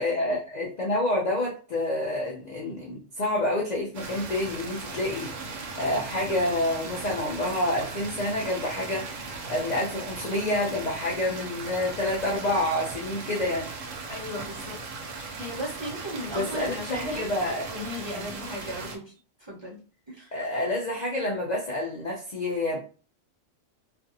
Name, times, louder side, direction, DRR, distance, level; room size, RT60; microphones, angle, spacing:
voice 1, 0.0-13.7 16.3-17.7 18.1-18.2 20.3-22.8, left 1 dB, 50° left, -3 dB, 0.5 m, -28 dB
sound 1, 3.9-19.0, right 3 dB, 80° right, 1.0 m, -38 dB
voice 2, 14.1-14.8 15.1-17.3 17.7-19.0 19.4-19.8 20.1-20.3, equal, 25° right, -6 dB, 0.7 m, -36 dB
2.5 x 2.5 x 2.6 m, 0.37 s
omnidirectional pair, 1.3 m